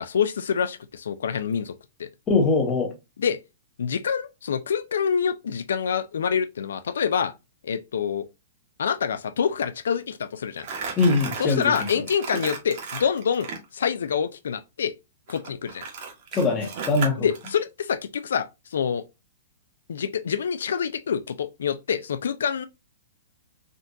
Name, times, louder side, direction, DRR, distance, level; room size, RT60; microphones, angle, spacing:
voice 1, 0.0-1.7 2.0-2.1 3.2-3.4 3.8-7.3 7.6-8.3 8.8-10.7 11.4-13.5 13.7-14.9 15.3-15.8 17.2-19.0 19.9-22.7, left 7 dB, 90° left, 0.3 m, -26 dB
voice 2, 2.3-2.9 11.0-11.6 16.3-17.2, left 3 dB, 15° left, 0.7 m, -21 dB
Crumpling crinkling, 10.6-13.6 15.3-17.5, right 5 dB, 40° right, 1.0 m, -35 dB
3.7 x 2.2 x 2.5 m
hypercardioid pair, 170°, 0 cm